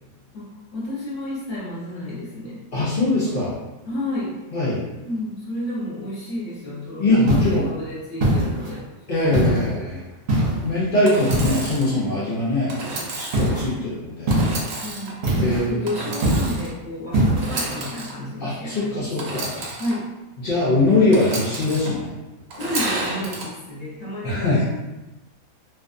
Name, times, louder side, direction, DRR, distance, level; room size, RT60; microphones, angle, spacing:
voice 1, 0.3-2.6 3.8-4.3 5.0-8.8 9.3-9.6 14.8-15.2 15.5-19.5 19.8-20.1 20.9-21.2 22.6-24.7, left 1 dB, 30° left, -8 dB, 0.8 m, -31 dB
voice 2, 2.7-3.6 4.5-4.8 7.0-7.7 9.1-9.8 10.6-12.8 13.1-14.3 15.4-15.8 18.4-19.5 20.4-22.1 24.2-24.6, left 2 dB, 60° left, -8 dB, 0.5 m, -21 dB
sound 1, 7.3-7.6 8.2-8.8 9.3-9.7 10.3-10.7 11.3-11.8 13.3-13.7 14.3-14.7 15.2-15.7 16.2-16.6 17.1-17.5, right 1 dB, 50° right, 0.8 m, -21 dB
Engine / Sawing, 11.0-11.9 12.7-13.5 14.3-15.1 15.9-16.7 17.3-18.1 19.2-19.9 21.1-21.9 22.5-23.5, right 2 dB, 75° right, 1.0 m, -31 dB
2.5 x 2.4 x 2.5 m, 1.1 s
omnidirectional pair, 1.5 m